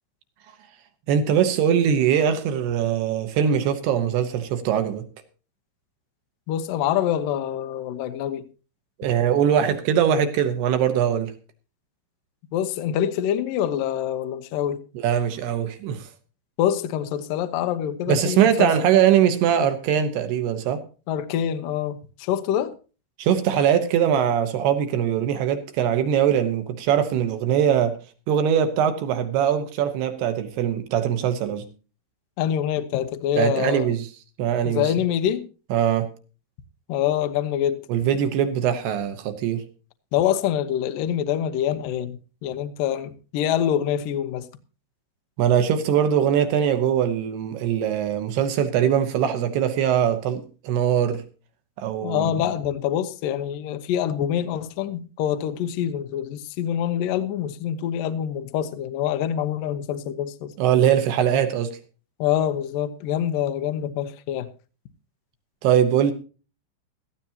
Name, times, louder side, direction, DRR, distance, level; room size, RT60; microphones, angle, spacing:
voice 1, 1.1-5.0 9.0-11.3 14.9-16.1 18.1-20.8 23.2-28.0 28.3-31.6 33.4-34.1 34.4-34.9 35.7-36.1 37.9-39.6 45.4-51.2 51.8-52.4 60.6-61.8 65.6-66.1, right 9 dB, 70° right, 2.9 m, -21 dB
voice 2, 6.5-8.5 12.5-14.8 16.6-18.7 21.1-22.7 32.4-33.9 34.6-35.4 36.9-37.8 40.1-44.5 52.0-60.5 62.2-64.5, left 10 dB, 90° left, 1.9 m, -25 dB
18.0 x 13.5 x 2.9 m
omnidirectional pair, 5.4 m